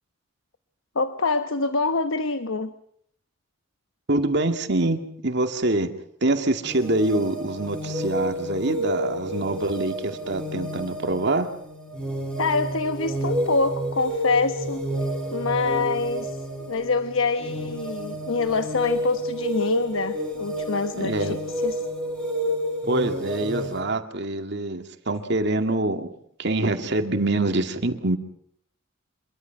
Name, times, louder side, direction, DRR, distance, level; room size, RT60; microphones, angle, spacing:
voice 1, 0.9-2.7 12.4-14.9 15.3-21.4 21.6-21.9, left 4 dB, 80° left, 10 dB, 1.1 m, -25 dB
voice 2, 4.1-5.9 6.2-11.5 20.9-21.4 22.9-26.1 26.4-28.2, right 2 dB, 55° right, 6 dB, 2.2 m, -25 dB
sound 1, 6.6-23.8, equal, 5° left, 5.6 m, -30 dB
26.0 x 23.0 x 5.9 m, 0.68 s
head